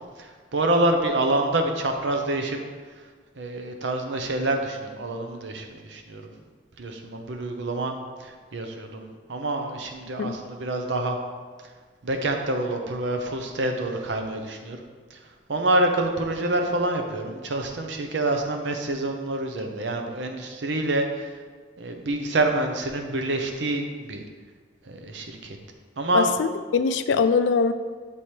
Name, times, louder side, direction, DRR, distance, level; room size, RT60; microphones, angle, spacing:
voice 1, 0.2-2.6 3.4-6.3 6.8-11.2 12.0-14.8 15.1-15.2 15.5-21.3 21.8-24.2 24.9-25.6 26.0-26.3, right 2 dB, 75° right, 4 dB, 0.7 m, -27 dB
voice 2, 26.1-27.7, left 5 dB, 75° left, 11 dB, 0.3 m, -22 dB
7.0 x 3.2 x 4.4 m, 1.5 s
head